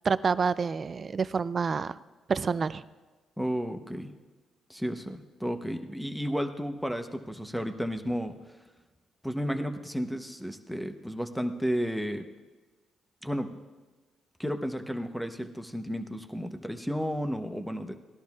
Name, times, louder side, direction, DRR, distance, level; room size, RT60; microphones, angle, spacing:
voice 1, 0.0-2.0 2.3-2.8, right 5 dB, 40° right, 15 dB, 0.4 m, -28 dB
voice 2, 3.4-4.1 4.7-8.3 9.2-12.2 13.2-13.5 14.4-17.9, equal, ahead, 6 dB, 0.8 m, -32 dB
18.5 x 11.5 x 2.4 m, 1.3 s
cardioid pair, 90°, 0 cm